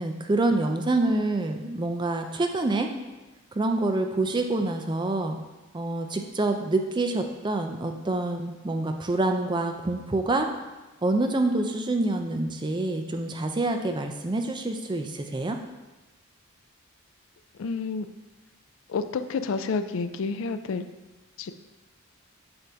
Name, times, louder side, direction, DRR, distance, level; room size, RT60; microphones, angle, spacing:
voice 1, 0.0-2.9 3.5-5.4 5.7-10.5 11.0-15.6, right 2 dB, 20° right, 5 dB, 0.4 m, -26 dB
voice 2, 17.6-18.1 18.9-20.8 21.4-21.5, left 4 dB, 60° left, 10 dB, 0.3 m, -29 dB
7.8 x 2.6 x 5.6 m, 1.1 s
head